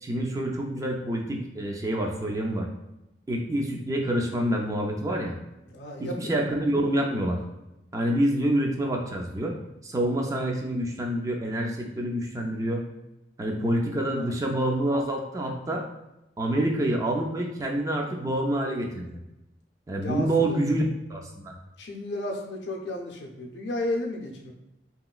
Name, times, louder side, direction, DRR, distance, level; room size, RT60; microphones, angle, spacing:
voice 1, 0.0-2.7 3.3-5.4 6.0-7.4 7.9-9.6 9.8-12.8 13.4-15.8 16.4-19.2 19.9-20.8 21.1-21.5, right 1 dB, 20° right, 1 dB, 0.3 m, -27 dB
voice 2, 5.7-6.3 14.2-14.3 20.0-20.6 21.8-24.5, left 1 dB, 70° left, 1 dB, 0.5 m, -33 dB
3.0 x 2.9 x 2.3 m, 0.92 s
head